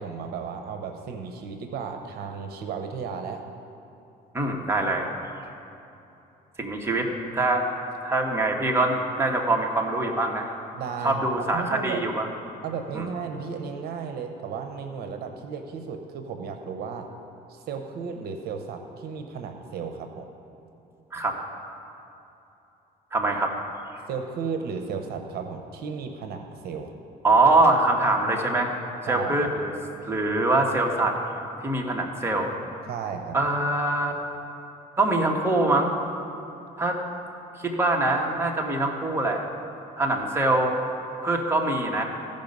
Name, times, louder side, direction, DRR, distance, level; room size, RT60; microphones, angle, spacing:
voice 1, 0.0-3.4 10.7-12.0 12.6-17.1 17.5-20.3 24.1-26.9 29.1-29.5 32.9-33.4, right 6 dB, 70° right, 6 dB, 0.8 m, -34 dB
voice 2, 4.3-5.1 6.6-7.7 8.0-10.5 11.0-12.3 12.9-13.1 21.1-21.4 23.1-23.5 27.2-28.7 29.0-29.7 30.1-31.2 31.6-32.5 33.3-34.1 35.0-35.9 36.8-37.0 37.6-39.4 40.0-40.8 41.2-42.0, right 2 dB, 15° right, 0 dB, 1.2 m, -23 dB
15.5 x 5.3 x 5.3 m, 2.9 s
cardioid pair, 110°, 17 cm